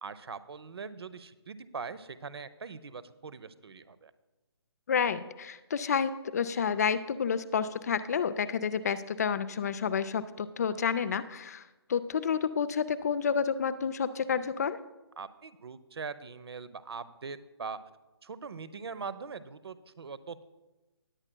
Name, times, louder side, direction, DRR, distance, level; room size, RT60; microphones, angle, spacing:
voice 1, 0.0-4.1 15.2-17.8 18.2-20.4, right 5 dB, 65° right, 14 dB, 0.6 m, -42 dB
voice 2, 4.9-11.6 11.9-14.8, left 6 dB, 35° left, 13 dB, 0.4 m, -30 dB
19.0 x 8.8 x 2.2 m, 1.1 s
figure-of-eight pair, 150°, 14 cm